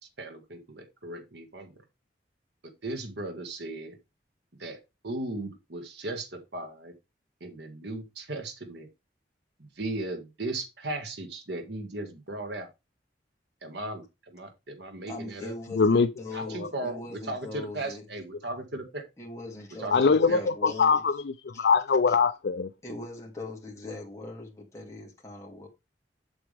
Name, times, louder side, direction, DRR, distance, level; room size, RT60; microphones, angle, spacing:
voice 1, 0.2-1.7 2.6-4.0 4.6-4.8 5.0-6.9 7.4-8.9 9.6-12.7 13.6-15.5 16.3-19.0 19.8-20.8, right 2 dB, 65° right, 1.7 m, -37 dB
voice 2, 15.1-18.0 19.2-21.0 21.5-21.7 22.1-22.2 22.8-25.7, left 2 dB, 15° left, 2.7 m, -40 dB
voice 3, 15.8-16.1 19.9-22.7, left 5 dB, 65° left, 0.4 m, -22 dB
7.9 x 7.0 x 3.5 m
head